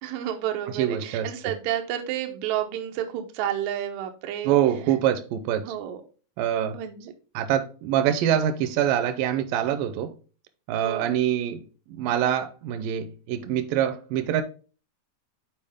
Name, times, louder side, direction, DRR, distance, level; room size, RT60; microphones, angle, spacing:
voice 1, 0.0-4.6 5.6-6.0 6.7-7.1 10.7-11.1, right 11 dB, 75° right, 2.0 m, -30 dB
voice 2, 0.7-1.3 4.4-5.8 6.4-6.8 7.3-10.1 10.7-14.4, right 10 dB, 90° right, 2.3 m, -25 dB
7.6 x 4.3 x 3.5 m
omnidirectional pair, 3.9 m